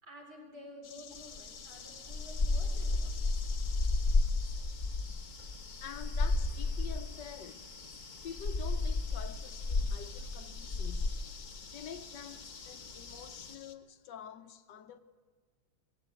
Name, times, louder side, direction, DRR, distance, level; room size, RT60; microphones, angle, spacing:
voice 1, 0.0-3.4, left 1 dB, 60° right, 4.5 m, -52 dB
sound 1, 0.8-13.8, left 7 dB, 55° left, 1.2 m, -54 dB
sound 2, 1.1-13.5, left 3 dB, 30° left, 0.9 m, -34 dB
voice 2, 5.5-7.7 8.2-11.2 11.7-15.0, left 8 dB, 70° left, 1.4 m, -47 dB
19.5 x 16.0 x 8.2 m
omnidirectional pair, 2.1 m